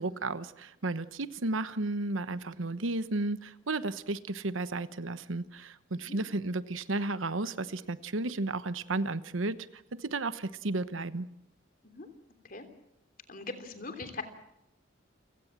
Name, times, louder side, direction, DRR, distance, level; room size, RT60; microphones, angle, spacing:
voice 1, 0.0-9.6 9.9-11.3, right 2 dB, 90° right, 14 dB, 1.1 m, -33 dB
voice 2, 13.3-14.2, left 3 dB, 45° left, 8 dB, 3.2 m, -41 dB
29.0 x 17.5 x 7.5 m, 0.83 s
head